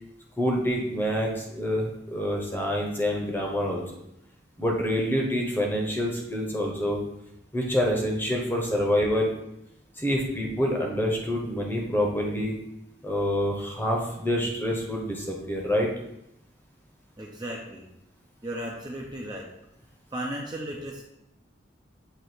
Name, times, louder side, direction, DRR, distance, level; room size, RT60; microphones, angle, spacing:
voice 1, 0.4-3.8 4.6-7.0 7.5-9.3 10.0-12.5 13.0-15.9, equal, 10° left, -1 dB, 1.0 m, -27 dB
voice 2, 17.2-17.9 18.4-19.5 20.1-21.0, right 1 dB, 20° right, -2 dB, 0.6 m, -35 dB
7.9 x 3.0 x 4.4 m, 0.83 s
head